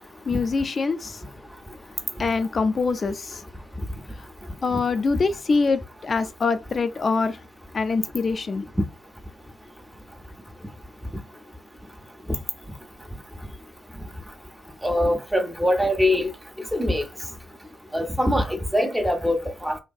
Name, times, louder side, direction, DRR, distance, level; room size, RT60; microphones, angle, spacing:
voice 1, 0.2-1.4 2.2-3.4 4.2-4.3 4.6-7.4 7.7-8.7, left 4 dB, 45° left, 0.4 m, -24 dB
voice 2, 14.8-16.3 16.7-17.0 17.9-19.8, left 1 dB, 5° right, 0.5 m, -23 dB
2.6 x 2.2 x 2.3 m
hypercardioid pair, 45°, 0 cm